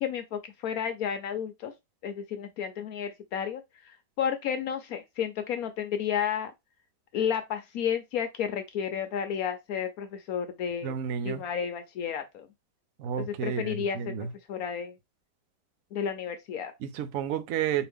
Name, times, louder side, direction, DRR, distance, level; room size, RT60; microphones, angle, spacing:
voice 1, 0.0-1.7 2.0-3.6 3.9-6.5 7.1-10.9 11.2-12.5 13.2-14.9 15.9-16.7, left 8 dB, 65° left, 1.0 m, -32 dB
voice 2, 10.8-11.4 13.0-14.3 16.8-17.9, right 8 dB, 65° right, 0.9 m, -31 dB
4.5 x 2.9 x 3.4 m
omnidirectional pair, 1.8 m